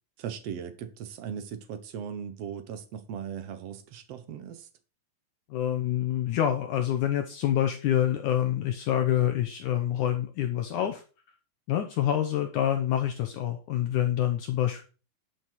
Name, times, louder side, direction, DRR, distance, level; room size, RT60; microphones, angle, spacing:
voice 1, 0.2-4.7, right 8 dB, 65° right, 1.6 m, -38 dB
voice 2, 5.5-11.0 11.7-14.8, left 11 dB, 70° left, 2.1 m, -27 dB
11.5 x 6.6 x 4.6 m
omnidirectional pair, 4.2 m